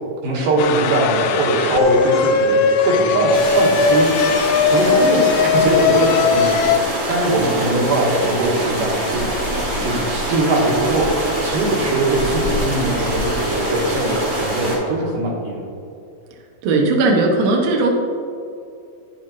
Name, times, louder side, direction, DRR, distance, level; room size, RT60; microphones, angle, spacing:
voice 1, 0.2-4.4 4.7-6.6 7.1-9.2 9.8-11.1 11.4-15.6, right 2 dB, 80° right, -3 dB, 3.0 m, -21 dB
sound 1, 0.6-6.8, left 5 dB, 80° left, 1.7 m, -18 dB
sound 2, 3.3-14.8, right 1 dB, 40° right, 2.1 m, -24 dB
voice 2, 16.6-17.9, right 3 dB, 65° right, 0 dB, 1.7 m, -17 dB
10.0 x 7.5 x 3.0 m, 2.6 s
omnidirectional pair, 3.8 m